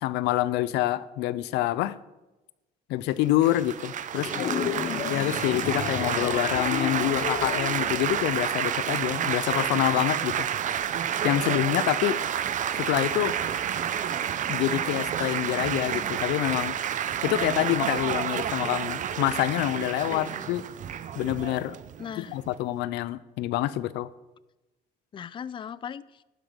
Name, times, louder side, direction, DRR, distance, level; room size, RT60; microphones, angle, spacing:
voice 1, 0.0-2.0 2.9-4.5 5.1-10.4 11.2-12.2 12.7-13.4 14.5-16.7 17.2-20.6 21.2-21.8 22.2-24.1, left 14 dB, 85° left, 18 dB, 0.5 m, -27 dB
Laughter / Applause / Chatter, 3.4-22.5, right 9 dB, 50° right, 0.7 m, -30 dB
voice 2, 4.1-5.0 11.4-11.6 20.1-20.4 22.0-22.4 25.1-26.2, left 8 dB, 30° left, 19 dB, 0.4 m, -38 dB
sound 1, 4.3-8.8, left 8 dB, 45° left, 0.8 m, -33 dB
12.0 x 10.5 x 5.1 m, 1.1 s
cardioid pair, 110°, 17 cm